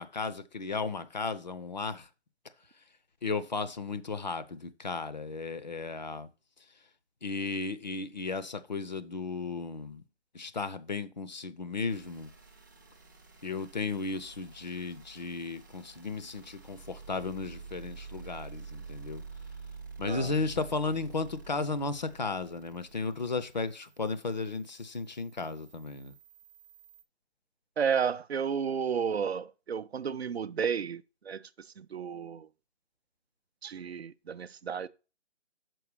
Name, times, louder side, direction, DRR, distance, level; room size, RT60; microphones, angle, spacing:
voice 1, 0.0-2.1 3.2-6.3 7.2-10.0 10.3-12.3 13.4-19.2 20.0-26.1, left 4 dB, 40° left, 0.5 m, -35 dB
sound 1, 11.9-27.0, right 5 dB, 15° right, 0.5 m, -49 dB
voice 2, 27.8-32.5 33.6-34.9, right 7 dB, 65° right, 0.5 m, -32 dB
6.1 x 4.6 x 4.8 m
figure-of-eight pair, 145°, 34 cm